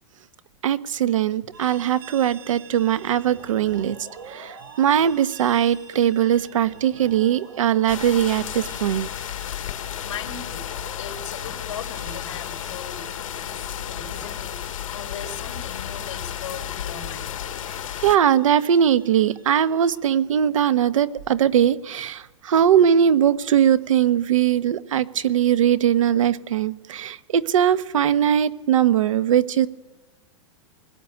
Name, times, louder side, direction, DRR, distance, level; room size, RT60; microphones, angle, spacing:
voice 1, 0.6-4.0 4.3-9.1 18.0-29.7, right 9 dB, 75° right, 13 dB, 1.2 m, -20 dB
sound 1, 1.5-20.0, right 5 dB, 45° right, 5.4 m, -47 dB
sound 2, 7.9-18.2, left 10 dB, 85° left, 1.3 m, -33 dB
voice 2, 10.0-10.7 11.0-17.4, left 6 dB, 60° left, 0 dB, 4.2 m, -38 dB
21.5 x 17.5 x 9.3 m, 1.1 s
supercardioid pair, 175°, 17 cm